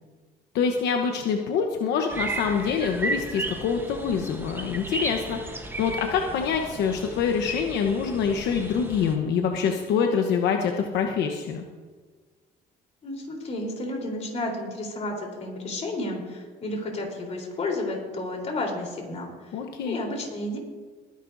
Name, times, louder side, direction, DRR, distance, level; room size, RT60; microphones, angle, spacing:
voice 1, 0.5-11.6 19.5-20.0, left 6 dB, 80° left, 3 dB, 1.0 m, -25 dB
sound 1, 2.1-9.2, right 2 dB, 15° right, 1.1 m, -35 dB
voice 2, 13.0-19.6 19.8-20.6, left 2 dB, 40° left, 0 dB, 3.8 m, -32 dB
21.0 x 10.5 x 2.7 m, 1.4 s
cardioid pair, 110°, 17 cm